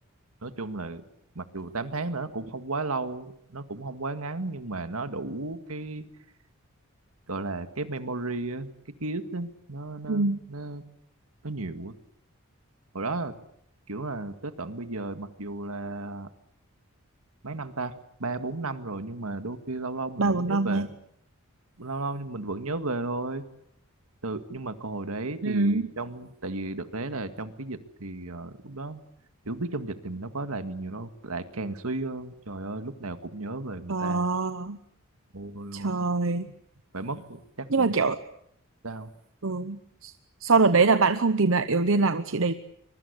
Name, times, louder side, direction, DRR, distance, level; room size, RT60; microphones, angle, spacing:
voice 1, 0.4-1.0 1.4-6.1 7.3-8.7 9.0-10.8 11.4-11.9 12.9-13.3 13.9-16.3 17.4-17.9 18.2-20.9 21.8-23.4 24.2-29.0 29.5-34.3 35.3-36.0 36.9-37.9 38.8-39.1, right 2 dB, 80° right, 9 dB, 2.0 m, -34 dB
voice 2, 10.1-10.4 20.2-20.9 25.4-25.9 33.9-34.8 35.7-36.5 37.7-38.2 39.4-40.1 40.4-42.5, right 3 dB, 65° right, 10 dB, 0.9 m, -24 dB
25.0 x 23.0 x 8.3 m, 0.75 s
head